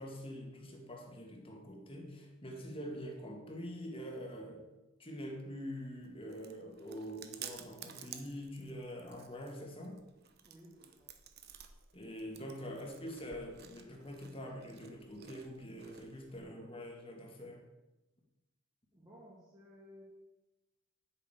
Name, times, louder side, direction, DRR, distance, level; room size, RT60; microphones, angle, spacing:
voice 1, 0.0-4.7 5.0-10.0 11.9-17.6, equal, 25° left, 1 dB, 2.1 m, -45 dB
Chewing mastication, 5.7-16.4, right 9 dB, 50° right, 0.9 m, -54 dB
voice 2, 10.4-11.1 18.9-20.0, equal, 20° right, -6 dB, 2.6 m, -58 dB
9.1 x 6.6 x 8.2 m, 1.0 s
head